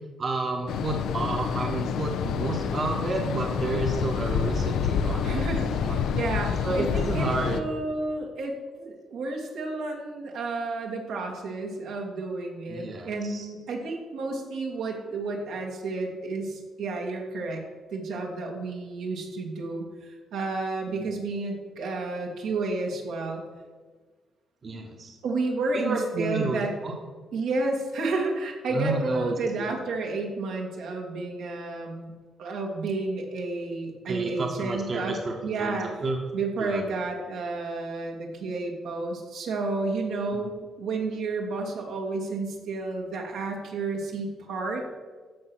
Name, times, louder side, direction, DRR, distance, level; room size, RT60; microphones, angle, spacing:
voice 1, 0.2-5.4 5.7-6.0 6.6-7.6 12.7-13.5 20.9-21.0 24.6-25.2 25.7-27.0 28.7-29.7 34.1-36.2 36.6-36.8 40.3-40.5, right 3 dB, 40° right, 1 dB, 1.5 m, -31 dB
sound 1, 0.7-7.6, left 7 dB, 80° left, 0.7 m, -28 dB
voice 2, 5.2-17.6 17.9-23.4 25.2-26.7 27.3-32.1 32.4-35.2 35.4-35.9 36.3-45.0, right 3 dB, 80° right, 0 dB, 2.4 m, -31 dB
14.5 x 5.6 x 6.4 m, 1.4 s
cardioid pair, 90°, 0 cm